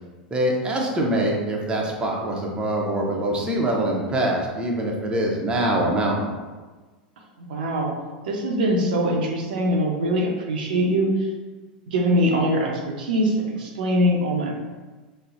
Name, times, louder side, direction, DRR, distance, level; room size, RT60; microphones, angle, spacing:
voice 1, 0.3-6.3, right 1 dB, 20° right, -1 dB, 0.6 m, -24 dB
voice 2, 7.4-7.9 8.2-11.3 11.9-12.7 13.0-14.5, equal, 75° right, -1 dB, 0.6 m, -22 dB
3.9 x 2.1 x 2.4 m, 1.3 s
hypercardioid pair, 95°, 5 cm